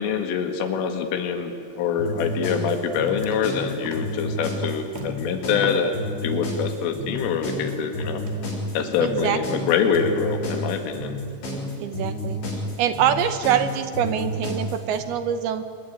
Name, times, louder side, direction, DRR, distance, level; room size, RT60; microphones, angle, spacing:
voice 1, 0.0-8.2 8.7-11.2, left 6 dB, 90° left, 6 dB, 4.5 m, -25 dB
sound 1, 2.0-15.0, left 1 dB, 65° left, 8.6 m, -30 dB
sound 2, 2.0-2.1 2.5-6.8 7.2-11.1, equal, 20° right, 2.1 m, -41 dB
voice 2, 9.0-9.7 11.8-12.4 12.8-15.6, right 9 dB, 75° right, 10 dB, 2.4 m, -24 dB
28.0 x 22.0 x 9.4 m, 2.6 s
omnidirectional pair, 5.6 m